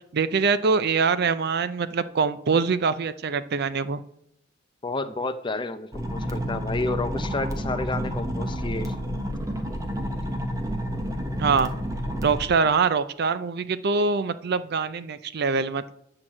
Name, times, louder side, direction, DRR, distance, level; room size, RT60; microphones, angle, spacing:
voice 1, 0.1-4.0 11.4-11.7 12.2-15.9, right 5 dB, 55° right, 14 dB, 0.5 m, -24 dB
voice 2, 4.8-8.9, left 2 dB, 25° left, 11 dB, 0.6 m, -30 dB
sound 1, 5.9-12.4, equal, 15° right, 1.1 m, -30 dB
9.6 x 4.8 x 7.3 m, 0.75 s
head